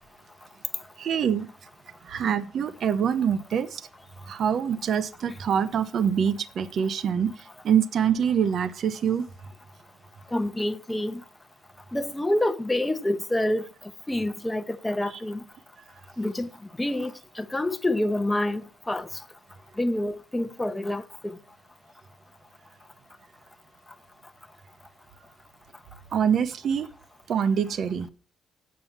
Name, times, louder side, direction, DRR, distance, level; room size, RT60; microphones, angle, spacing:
voice 1, 1.0-1.5 2.1-3.8 4.3-7.3 7.6-9.3 26.1-26.9 27.3-28.1, right 8 dB, 60° right, 0.8 m, -25 dB
voice 2, 10.3-11.2 11.9-13.6 14.1-15.4 16.2-16.5 16.8-17.1 17.4-18.6 18.9-19.1 19.8-21.3, left 1 dB, 10° left, 0.8 m, -27 dB
7.6 x 7.0 x 7.2 m
cardioid pair, 90°, 0 cm